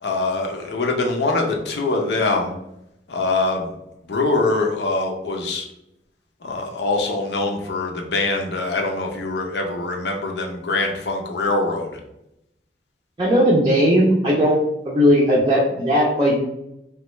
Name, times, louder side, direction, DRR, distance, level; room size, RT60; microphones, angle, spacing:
voice 1, 0.0-2.5 3.1-3.7 4.1-5.7 6.4-11.9, left 3 dB, 75° left, 2 dB, 0.6 m, -23 dB
voice 2, 13.2-14.6 14.9-16.4, equal, 25° right, -6 dB, 0.4 m, -17 dB
3.1 x 2.3 x 3.0 m, 0.84 s
head